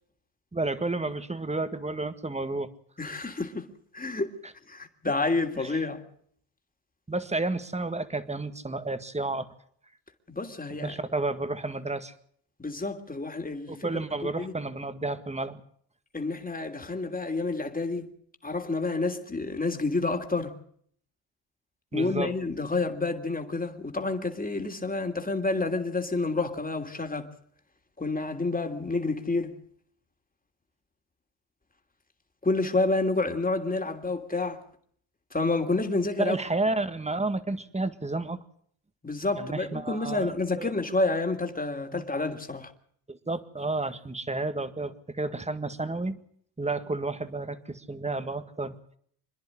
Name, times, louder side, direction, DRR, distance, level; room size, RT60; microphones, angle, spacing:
voice 1, 0.5-2.7 5.6-5.8 7.1-9.5 10.7-12.1 13.7-15.6 21.9-22.3 36.2-38.4 39.3-40.7 41.9-42.0 43.1-46.2 46.6-48.7, right 2 dB, 15° right, 1.8 m, -31 dB
voice 2, 3.0-3.7 3.9-4.3 4.7-6.0 10.3-11.0 12.6-13.9 14.2-14.5 16.1-18.1 18.4-20.5 21.9-27.3 28.0-29.5 32.4-34.6 35.3-36.3 39.0-42.7, left 3 dB, 20° left, 3.0 m, -29 dB
26.5 x 10.5 x 10.0 m
supercardioid pair, 70°, 46 cm